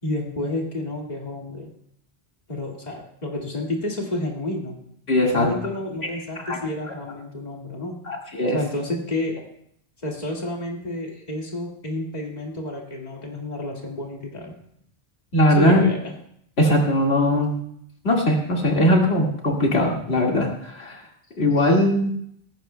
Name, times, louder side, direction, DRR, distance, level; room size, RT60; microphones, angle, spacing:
voice 1, 0.0-1.7 2.5-4.8 5.2-8.0 8.5-9.4 10.0-14.5 15.6-16.1 21.6-21.7, left 1 dB, 45° left, -1 dB, 2.2 m, -30 dB
voice 2, 5.1-5.5 6.4-6.6 8.1-8.6 15.3-15.8 16.6-17.5 18.0-21.0 21.4-22.1, left 1 dB, 90° left, -1 dB, 2.3 m, -20 dB
18.5 x 16.0 x 2.2 m, 0.70 s
omnidirectional pair, 1.0 m